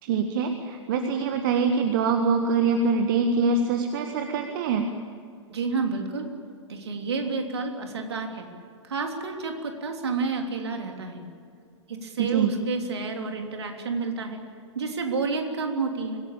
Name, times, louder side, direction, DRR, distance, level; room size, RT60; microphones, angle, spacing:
voice 1, 0.0-4.8 12.2-12.5, right 5 dB, 45° right, 6 dB, 1.7 m, -24 dB
voice 2, 5.5-6.3 6.7-8.5 8.8-11.2 11.9-14.4 14.7-16.2, right 4 dB, 65° right, 4 dB, 3.3 m, -30 dB
25.0 x 17.5 x 8.7 m, 2.3 s
figure-of-eight pair, 100°, 15 cm